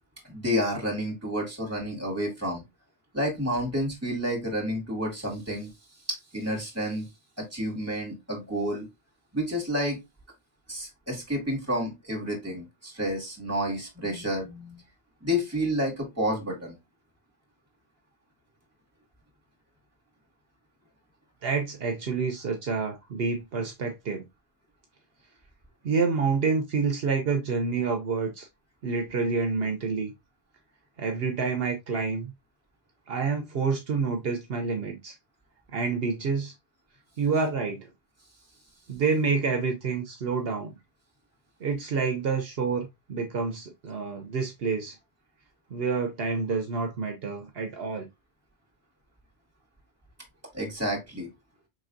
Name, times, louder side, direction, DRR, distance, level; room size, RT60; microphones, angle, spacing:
voice 1, 0.2-2.6 3.1-5.7 6.1-7.1 7.4-8.9 9.3-10.0 10.7-14.8 15.2-16.8 31.9-32.0 50.5-51.3, equal, 15° right, 2.2 m, -30 dB
voice 2, 21.4-24.3 25.8-28.5 28.8-30.1 31.0-32.3 33.1-35.1 35.7-36.5 37.2-37.9 38.9-40.7 41.6-44.9 45.7-48.0, right 4 dB, 70° right, 1.0 m, -28 dB
5.3 x 3.3 x 2.6 m
omnidirectional pair, 1.1 m